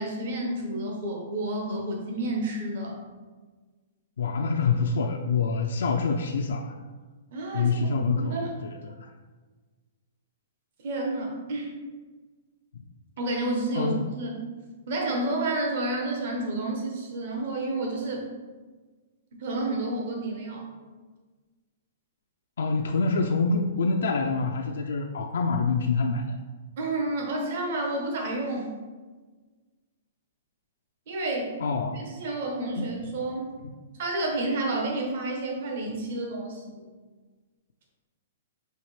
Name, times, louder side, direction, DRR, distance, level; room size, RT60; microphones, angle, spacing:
voice 1, 0.0-3.0 7.3-7.8 8.2-8.5 10.8-11.7 13.2-14.4 14.9-18.3 19.4-20.7 26.8-28.7 31.1-31.5 31.9-33.5 34.0-36.8, right 2 dB, 55° right, 0 dB, 0.9 m, -30 dB
voice 2, 4.2-6.8 7.5-8.4 8.8-9.1 13.7-14.0 22.6-26.4 31.6-32.0 32.8-32.9 33.6-33.7, left 4 dB, 85° left, 2 dB, 0.3 m, -26 dB
5.6 x 2.8 x 3.1 m, 1.4 s
hypercardioid pair, 160°, 0 cm